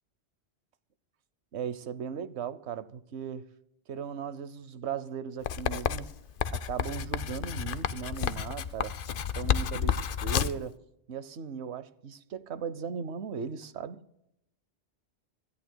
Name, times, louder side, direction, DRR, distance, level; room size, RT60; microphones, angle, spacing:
voice 1, 1.5-3.5 3.9-6.1 6.5-8.9 9.3-10.8 11.1-14.0, right 7 dB, 85° right, 1.1 m, -37 dB
Writing, 5.5-10.7, left 8 dB, 60° left, 0.8 m, -31 dB
26.0 x 13.5 x 2.2 m
omnidirectional pair, 1.1 m